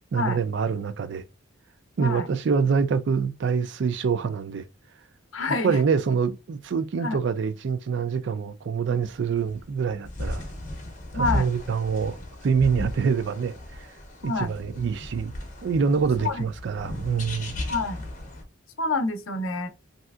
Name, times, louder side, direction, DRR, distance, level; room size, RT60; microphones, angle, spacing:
voice 1, 0.1-1.2 2.0-4.6 5.6-10.4 11.1-12.2 12.4-13.9 14.2-15.3 15.6-17.6, right 5 dB, 55° right, 0.3 m, -25 dB
voice 2, 5.3-5.8 7.0-7.2 11.1-11.5 14.2-14.5 16.2-16.5 17.7-18.0 18.8-19.7, left 3 dB, 75° left, 0.6 m, -27 dB
sound 1, 9.0-18.4, left 1 dB, 40° left, 0.8 m, -36 dB
3.2 x 2.7 x 2.3 m
head